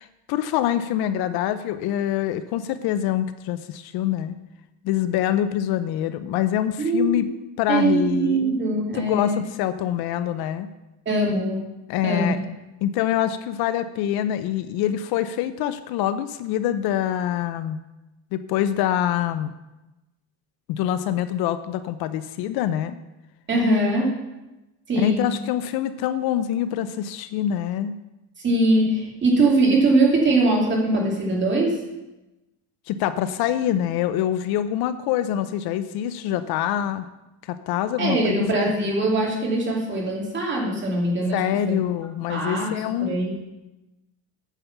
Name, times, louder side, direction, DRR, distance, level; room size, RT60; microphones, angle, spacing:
voice 1, 0.0-4.3 4.8-7.3 7.6-8.6 8.9-10.7 11.9-12.4 12.8-17.8 18.3-19.5 20.7-23.0 25.0-27.9 32.9-37.1 37.4-38.4 41.3-43.2, left 11 dB, 65° left, 12 dB, 0.6 m, -25 dB
voice 2, 6.8-7.3 7.7-9.5 11.1-11.6 12.0-12.3 23.5-24.2 24.9-25.3 28.4-31.8 38.0-41.8 42.3-42.7 43.0-43.3, right 2 dB, 25° right, -2 dB, 2.5 m, -22 dB
9.1 x 7.1 x 5.9 m, 1.0 s
cardioid pair, 150°, 41 cm